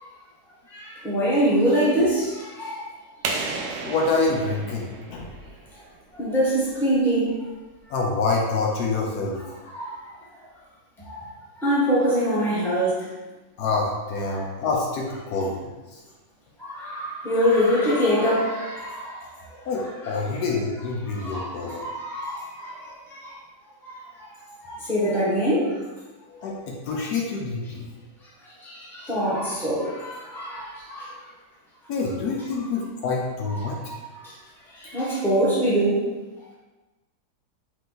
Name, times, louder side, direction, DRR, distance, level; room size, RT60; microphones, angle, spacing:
voice 1, 0.7-2.9 3.9-4.0 6.1-7.3 9.7-10.0 11.0-11.3 11.6-13.1 14.3-14.5 16.6-19.3 20.0-20.2 21.1-23.4 23.8-24.1 24.6-25.7 28.6-31.1 33.6-33.8 34.8-36.0, equal, ahead, -8 dB, 1.1 m, -24 dB
sound 1, 3.2-5.9, right 3 dB, 80° right, 1.2 m, -32 dB
voice 2, 3.8-5.3 7.9-9.6 13.6-16.0 19.7-21.9 26.3-27.9 31.9-33.8, left 3 dB, 75° left, -1 dB, 1.2 m, -27 dB
4.8 x 2.5 x 3.9 m, 1.2 s
omnidirectional pair, 1.8 m